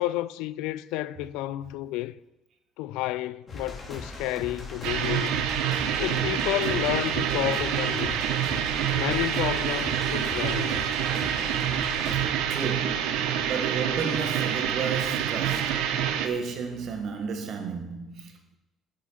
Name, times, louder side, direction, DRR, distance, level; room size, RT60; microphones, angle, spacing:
voice 1, 0.0-2.2 2.8-5.4 6.0-8.2 9.0-10.9, left 16 dB, 80° left, 0.3 m, -31 dB
sound 1, 3.5-12.2, left 2 dB, 40° left, 3.1 m, -39 dB
sound 2, 4.8-16.3, right 9 dB, 80° right, 0.8 m, -27 dB
voice 2, 12.1-15.9 16.2-18.6, right 5 dB, 60° right, 1.6 m, -33 dB
8.2 x 7.7 x 5.7 m
hypercardioid pair, 60°, 0 cm